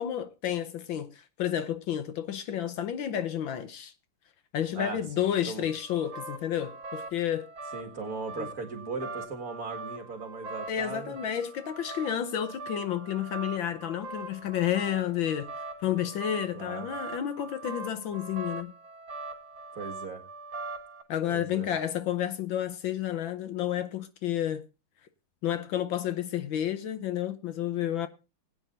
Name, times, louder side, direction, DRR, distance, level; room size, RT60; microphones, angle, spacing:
voice 1, 0.0-3.9 4.5-7.5 8.4-8.5 10.7-18.7 21.1-24.6 25.4-28.1, left 10 dB, 70° left, 1.5 m, -31 dB
voice 2, 4.7-5.7 7.7-11.2 16.5-16.9 19.7-20.2 21.3-21.7, right 4 dB, 45° right, 2.3 m, -38 dB
sound 1, 5.7-21.0, right 3 dB, 60° right, 2.4 m, -42 dB
20.0 x 8.8 x 2.6 m
omnidirectional pair, 2.4 m